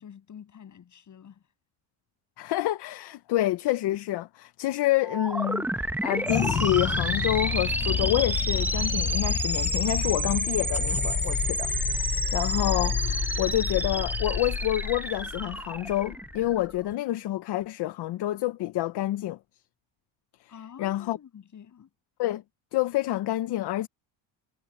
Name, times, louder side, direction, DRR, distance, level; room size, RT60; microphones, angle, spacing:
voice 1, 0.0-1.4 20.5-21.9, left 8 dB, 40° left, 7.9 m, -48 dB
voice 2, 2.4-11.9 12.3-19.4 20.8-21.2 22.2-22.4 22.7-23.9, left 15 dB, 60° left, 1.0 m, -28 dB
sound 1, 5.0-16.7, right 1 dB, 5° right, 1.2 m, -31 dB
sound 2, 6.2-16.9, left 7 dB, 25° left, 0.9 m, -30 dB
cardioid pair, 145°, 46 cm